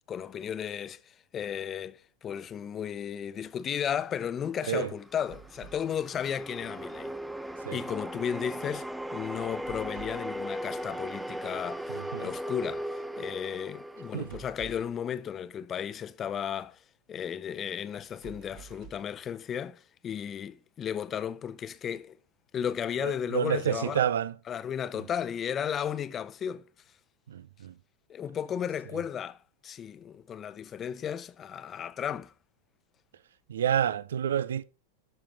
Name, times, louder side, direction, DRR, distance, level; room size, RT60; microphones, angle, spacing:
voice 1, 0.1-7.1 7.7-16.8 17.1-22.2 22.5-24.1 24.5-26.6 28.1-29.4 29.6-32.3, left 8 dB, 30° left, 0.8 m, -34 dB
sound 1, 4.7-15.0, right 1 dB, 5° right, 0.5 m, -38 dB
sound 2, 5.2-5.9 9.4-10.4 14.0-15.0 17.9-19.2, right 8 dB, 45° right, 1.6 m, -50 dB
voice 2, 11.9-12.3 14.1-14.4 23.0-24.3 27.3-27.7 33.5-34.6, right 9 dB, 70° right, 0.4 m, -29 dB
12.5 x 6.0 x 4.4 m
figure-of-eight pair, 90°, 0 cm